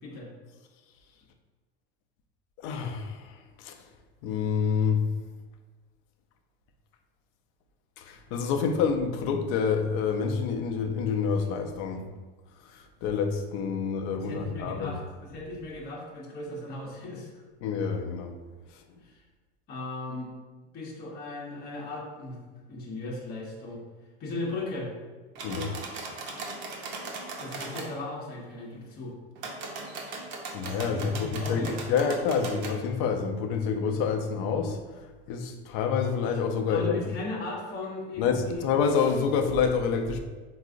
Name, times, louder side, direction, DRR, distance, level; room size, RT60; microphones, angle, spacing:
voice 1, 2.6-3.9 4.2-5.2 8.0-12.1 12.6-15.0 17.6-18.4 18.7-18.8 25.4-25.8 30.5-37.0 38.2-40.2, left 6 dB, 55° left, 5 dB, 0.5 m, -28 dB
voice 2, 14.2-17.3 19.0-19.2 19.7-20.3 20.7-23.8 24.2-24.9 27.4-29.1 30.9-32.0 36.7-38.6, left 2 dB, 30° left, -3 dB, 0.8 m, -37 dB
sound 1, 25.4-27.9 29.4-32.8, right 3 dB, 40° right, 0.6 m, -38 dB
4.5 x 2.0 x 2.5 m, 1.3 s
supercardioid pair, 120°, 30 cm